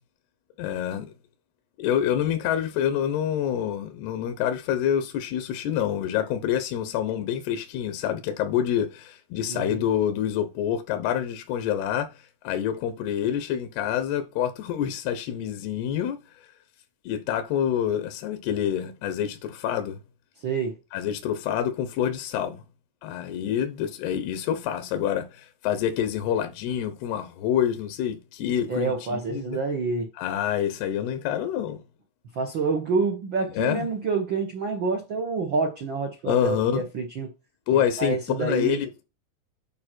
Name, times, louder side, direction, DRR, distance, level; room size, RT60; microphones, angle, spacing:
voice 1, 0.6-1.1 1.8-16.2 17.1-20.0 20.9-22.6 23.0-29.6 30.2-31.8 33.5-33.9 36.2-36.8 37.7-39.0, left 9 dB, 90° left, 3.1 m, -27 dB
voice 2, 9.5-9.8 20.4-20.7 28.7-30.1 32.3-37.3 38.0-38.8, right 4 dB, 75° right, 1.1 m, -27 dB
9.4 x 5.7 x 4.5 m
omnidirectional pair, 4.5 m